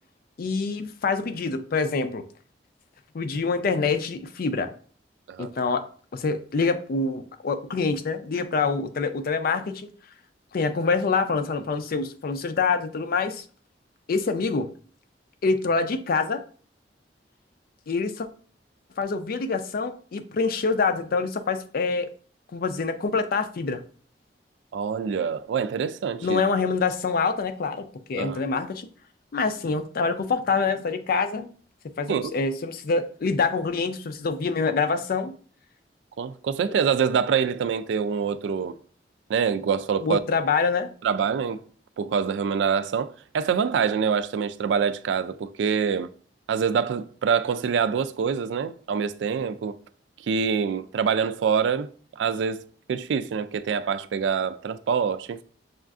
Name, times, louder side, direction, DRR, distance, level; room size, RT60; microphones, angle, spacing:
voice 1, 0.4-2.2 3.1-4.7 5.4-5.9 6.1-9.9 10.5-13.4 14.1-14.7 15.4-16.4 17.9-18.3 19.0-22.1 22.5-23.8 26.2-28.9 29.3-31.5 32.0-35.3 40.0-40.9, left 4 dB, 55° left, 0.4 m, -26 dB
voice 2, 24.7-26.4 28.2-28.4 32.1-32.2 36.2-38.8 39.3-40.2 41.0-41.6 42.0-46.1 46.5-49.8 50.3-52.6 52.9-55.4, right 6 dB, 80° right, 0.3 m, -25 dB
6.2 x 2.5 x 2.3 m
head